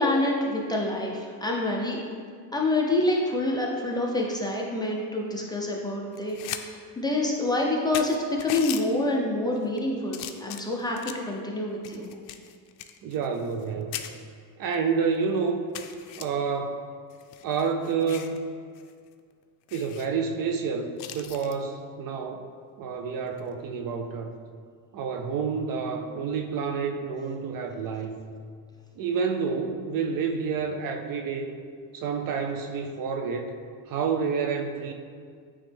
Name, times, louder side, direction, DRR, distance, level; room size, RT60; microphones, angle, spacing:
voice 1, 0.0-2.0 2.5-11.0 11.3-12.1, left 2 dB, 10° left, -2 dB, 0.6 m, -27 dB
sound 1, 6.1-6.6 7.0-7.1 7.6-7.7 7.9-8.8 9.5-9.8 10.1-11.3 11.8-13.7 13.9-14.1 14.7-14.8 15.1-15.2 15.7-16.2 17.1-18.4 18.8-18.9 19.2-19.3 19.7-20.1 21.0-21.6 23.3-23.5, left 11 dB, 70° left, 0.6 m, -38 dB
voice 2, 13.0-13.9 14.6-15.6 16.2-16.9 17.4-18.4 19.7-22.5 22.8-24.3 24.9-28.2 29.0-31.5 31.9-33.5 33.9-34.9, right 5 dB, 50° right, 4 dB, 0.5 m, -29 dB
8.9 x 3.2 x 3.4 m, 2.1 s
cardioid pair, 120°, 46 cm